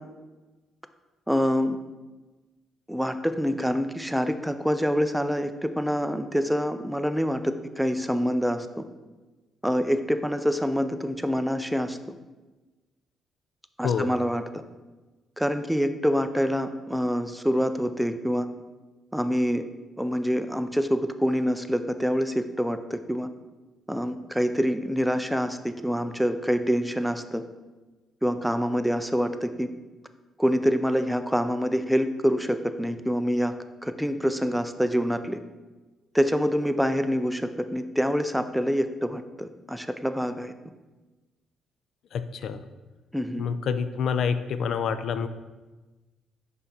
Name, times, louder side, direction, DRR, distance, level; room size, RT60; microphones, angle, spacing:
voice 1, 1.3-1.8 2.9-8.8 9.6-12.0 13.8-14.6 15.4-18.5 19.1-19.6 20.0-23.3 23.9-27.4 28.2-29.7 30.4-33.5 33.8-35.4 36.1-40.5 43.1-43.5, equal, ahead, 9 dB, 0.4 m, -26 dB
voice 2, 42.1-42.6 43.4-45.3, left 6 dB, 65° left, 11 dB, 0.4 m, -27 dB
5.6 x 4.0 x 4.3 m, 1.2 s
cardioid pair, 90°, 0 cm